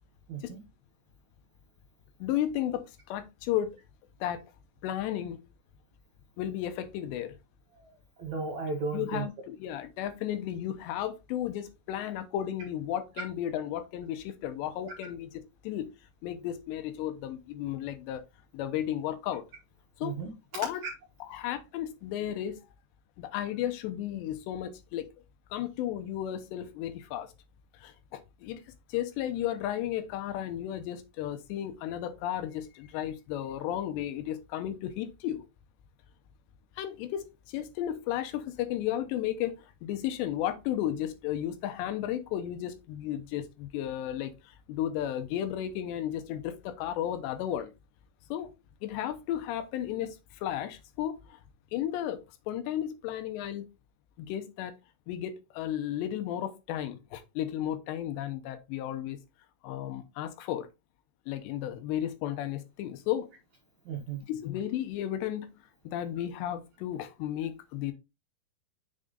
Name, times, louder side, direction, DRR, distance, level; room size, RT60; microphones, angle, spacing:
voice 1, 2.2-3.8 4.2-4.4 4.8-5.4 6.4-7.3 8.9-15.9 16.2-18.2 18.5-19.4 20.0-20.2 20.5-20.9 21.2-22.6 23.2-25.1 25.5-27.3 27.8-28.6 28.9-35.4 36.8-44.4 44.7-47.7 48.3-48.5 48.8-51.4 51.7-52.2 52.5-53.7 54.2-54.8 55.1-59.2 59.6-60.7 61.3-63.3 64.3-65.5 65.8-67.9, left 11 dB, 90° left, 3.1 m, -34 dB
voice 2, 8.2-9.3 20.0-20.3 63.9-64.2, right 4 dB, 70° right, 1.7 m, -34 dB
6.7 x 3.8 x 3.9 m
omnidirectional pair, 4.9 m